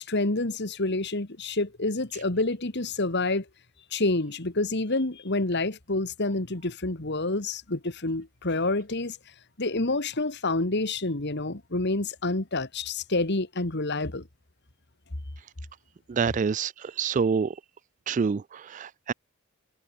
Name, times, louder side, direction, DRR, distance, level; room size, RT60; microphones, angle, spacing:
voice 1, 0.0-3.5 3.9-9.2 9.6-14.2, left 2 dB, 50° left, 1.9 m, -28 dB
voice 2, 16.1-17.5 18.1-19.1, right 5 dB, 35° right, 0.3 m, -27 dB
head